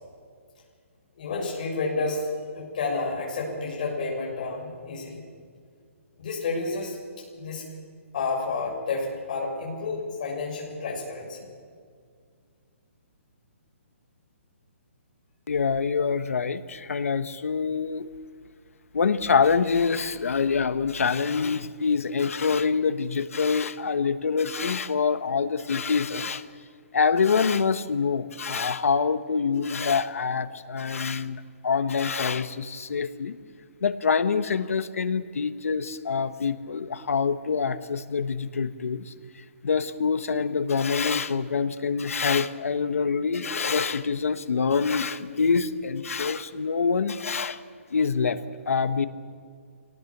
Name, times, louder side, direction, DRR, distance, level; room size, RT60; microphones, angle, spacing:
voice 1, 1.2-5.2 6.2-7.0 7.4-7.6 8.1-11.5, left 3 dB, 35° left, -2 dB, 6.9 m, -30 dB
voice 2, 15.5-18.1 18.9-26.4 26.9-33.4 33.8-47.6 47.9-49.1, left 5 dB, 75° left, 11 dB, 1.3 m, -25 dB
25.0 x 18.5 x 7.4 m, 2.1 s
hypercardioid pair, 180°, 8 cm